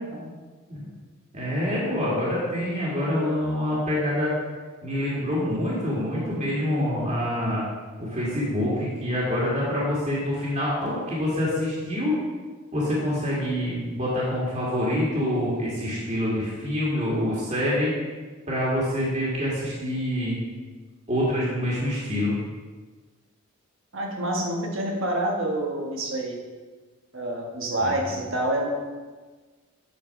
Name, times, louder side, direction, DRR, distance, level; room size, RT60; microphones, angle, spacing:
voice 1, 1.3-4.3 4.8-7.7 8.0-12.1 12.7-17.9 18.5-20.4 21.1-22.4 27.8-27.9, left 1 dB, 30° right, -7 dB, 2.0 m, -26 dB
voice 2, 23.9-26.4 27.1-28.7, right 1 dB, 60° right, 0 dB, 1.4 m, -27 dB
8.5 x 4.6 x 5.8 m, 1.4 s
head